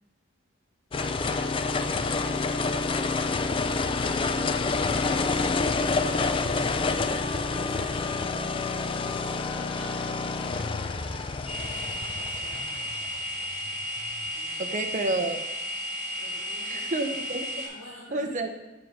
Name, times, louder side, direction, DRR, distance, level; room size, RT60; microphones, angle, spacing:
sound 1, 0.9-14.3, left 4 dB, 25° left, 0.3 m, -28 dB
voice 1, 1.6-3.3 5.5-6.6 7.5-8.3 8.9-12.7 14.2-14.8 16.1-17.1 17.6-18.5, left 1 dB, 70° left, -9 dB, 2.6 m, -48 dB
sound 2, 11.5-17.7, equal, 5° right, 2.5 m, -34 dB
voice 2, 14.6-15.4 16.6-17.6 18.1-18.5, right 2 dB, 35° right, 5 dB, 0.7 m, -29 dB
7.5 x 6.4 x 4.7 m, 1.1 s
head